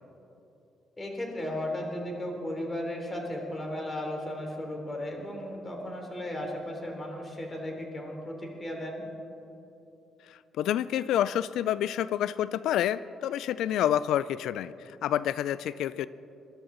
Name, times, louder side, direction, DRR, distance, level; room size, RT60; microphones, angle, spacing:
voice 1, 1.0-9.0, left 1 dB, 25° left, 1 dB, 3.3 m, -35 dB
voice 2, 10.3-16.1, left 11 dB, 80° left, 17 dB, 0.3 m, -28 dB
22.0 x 12.5 x 3.9 m, 2.9 s
cardioid pair, 90°, 0 cm